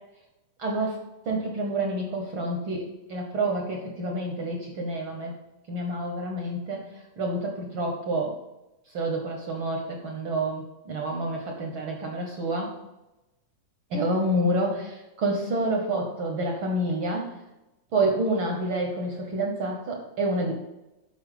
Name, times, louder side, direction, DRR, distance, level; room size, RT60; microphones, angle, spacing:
voice 1, 0.6-1.0 1.2-5.4 5.7-8.4 8.9-12.8 13.9-17.3 17.9-20.5, right 1 dB, 60° right, 1 dB, 1.3 m, -28 dB
8.0 x 5.6 x 4.9 m, 0.98 s
omnidirectional pair, 3.6 m